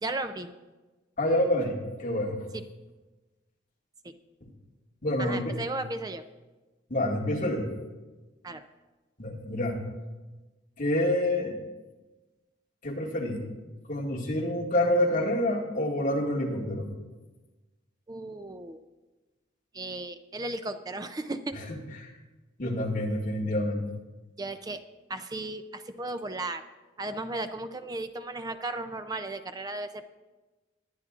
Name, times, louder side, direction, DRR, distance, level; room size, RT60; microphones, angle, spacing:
voice 1, 0.0-0.5 2.5-2.6 4.0-4.1 5.2-6.2 8.4-8.7 18.1-18.8 19.7-21.5 24.4-24.8 25.1-26.6 27.0-30.1, right 2 dB, 20° right, 10 dB, 0.4 m, -35 dB
voice 2, 1.2-2.4 5.0-5.5 6.9-7.7 9.2-9.8 10.8-11.6 12.8-13.4 13.9-16.9 21.7-22.1 22.6-23.8, left 1 dB, 45° left, -3 dB, 2.1 m, -27 dB
20.5 x 9.4 x 2.5 m, 1.2 s
head